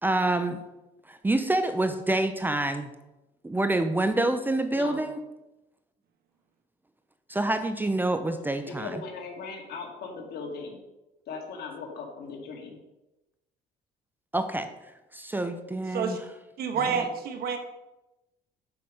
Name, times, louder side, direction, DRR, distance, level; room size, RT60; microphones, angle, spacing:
voice 1, 0.0-0.6 1.1-2.9 3.4-5.2 7.3-9.0 14.3-14.7 15.1-16.2 16.8-17.0, right 2 dB, 10° right, 8 dB, 0.6 m, -27 dB
voice 2, 4.7-5.0 8.7-10.8 11.3-12.8, left 4 dB, 70° left, 2 dB, 2.0 m, -38 dB
voice 3, 16.6-17.6, right 6 dB, 65° right, 6 dB, 1.4 m, -28 dB
7.0 x 5.2 x 6.5 m, 0.97 s
cardioid pair, 110°, 17 cm